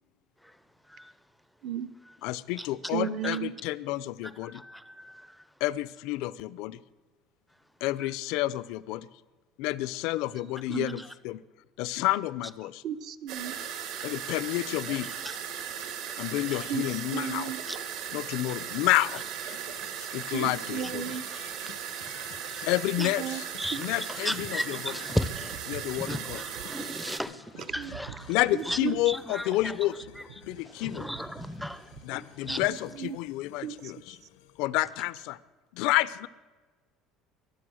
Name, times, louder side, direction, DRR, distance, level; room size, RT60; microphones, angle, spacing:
voice 1, 0.4-1.5 2.1-2.2 2.6-2.9 3.2-3.4 4.2-5.6 7.5-7.7 8.0-8.1 10.7-11.1 15.0-16.2 16.5-16.6 17.7-18.1 19.1-19.2 20.8-22.7 23.0-23.1 23.6-28.4 28.6-28.8 29.1-32.7, equal, ahead, 14 dB, 0.5 m, -38 dB
voice 2, 2.2-4.6 5.6-6.8 7.8-9.1 9.6-11.4 11.8-12.8 14.0-15.1 16.2-17.5 18.1-19.6 20.1-21.1 22.7-23.4 23.8-24.8 25.7-26.4 28.3-29.9 30.5-31.1 32.1-32.8 33.0-34.2 34.6-35.4 35.7-36.3, left 17 dB, 65° left, 18 dB, 0.5 m, -30 dB
voice 3, 2.9-3.5 10.7-11.0 12.8-13.6 16.5-17.6 20.3-21.2 23.0-23.4 23.7-23.8 27.8-28.0 28.5-29.0 32.5-32.6 33.0-33.2 33.6-33.9, right 9 dB, 40° right, 15 dB, 0.7 m, -34 dB
sound 1, 13.3-27.2, right 8 dB, 65° right, 1.6 m, -37 dB
sound 2, 19.1-34.7, left 12 dB, 90° left, 0.9 m, -52 dB
sound 3, 25.3-27.0 27.7-33.1, right 11 dB, 85° right, 0.6 m, -49 dB
22.5 x 8.2 x 6.3 m, 1.3 s
cardioid pair, 175°, 0 cm